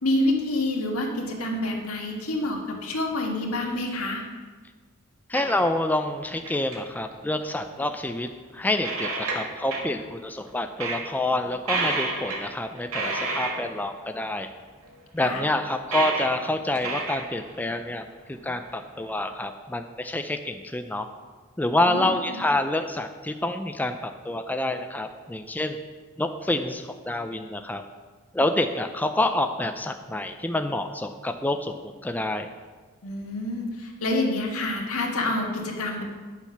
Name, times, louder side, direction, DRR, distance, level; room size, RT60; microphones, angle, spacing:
voice 1, 0.0-4.2 15.2-15.4 21.9-22.4 33.0-36.0, left 1 dB, 85° left, 1 dB, 1.8 m, -27 dB
voice 2, 5.3-8.3 8.5-14.5 15.1-21.1 21.6-25.8 26.2-27.8 28.3-31.7 32.0-32.5, left 1 dB, 10° left, 6 dB, 0.4 m, -27 dB
sound 1, 5.3-5.9 6.3-6.8 7.8-7.9 8.3-8.4 8.7-10.0 10.5-10.6 10.8-11.1 11.7-12.4 12.8-13.7 14.8-14.9 15.8-16.3 16.7-17.8 18.3-18.4 19.3-19.4, right 3 dB, 85° right, 1.8 m, -30 dB
9.8 x 7.1 x 5.8 m, 1.4 s
head